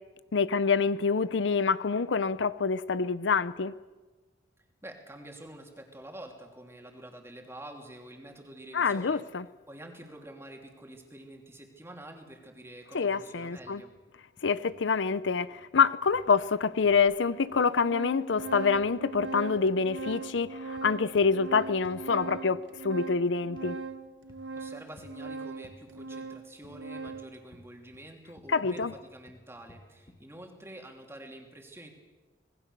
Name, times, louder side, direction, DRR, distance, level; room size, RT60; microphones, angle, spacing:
voice 1, 0.3-3.7 8.7-9.4 12.9-13.8 14.4-23.8 28.5-28.9, left 5 dB, 75° left, 16 dB, 0.6 m, -26 dB
voice 2, 4.8-9.2 9.7-13.9 24.5-31.9, right 1 dB, 15° right, 2 dB, 3.0 m, -47 dB
sound 1, 13.6-14.1 14.4-14.8 16.1-17.1 18.3-19.3 19.6-22.6 23.6-23.7 24.3-24.6 25.0-25.2 25.6-25.8 26.6-28.1 28.4-30.3, left 1 dB, 25° left, 1.7 m, -56 dB
Organ, 16.1-16.2 17.1-17.2 17.5-27.4, right 4 dB, 70° right, 1.0 m, -40 dB
26.5 x 19.5 x 6.8 m, 1.3 s
head